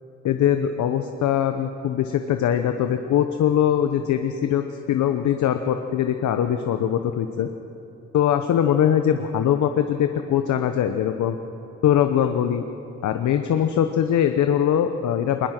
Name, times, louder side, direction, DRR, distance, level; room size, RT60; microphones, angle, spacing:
voice 1, 0.2-7.5 8.1-11.4 11.8-12.6 13.0-15.5, left 9 dB, 70° left, 7 dB, 1.0 m, -22 dB
21.5 x 21.0 x 6.1 m, 2.8 s
cardioid pair, 90°, 30 cm